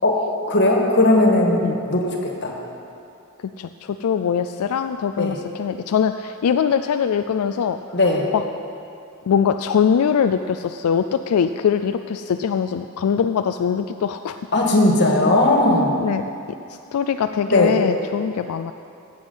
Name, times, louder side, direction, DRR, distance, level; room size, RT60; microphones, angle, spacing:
voice 1, 0.5-2.5 5.2-5.3 7.9-8.2 14.5-15.9 17.4-17.7, left 2 dB, 55° left, 1 dB, 1.7 m, -17 dB
voice 2, 3.6-7.8 8.3-8.4 9.3-14.4 16.0-16.2 16.9-18.7, left 7 dB, 90° left, 9 dB, 0.4 m, -22 dB
15.0 x 7.9 x 5.5 m, 2.6 s
head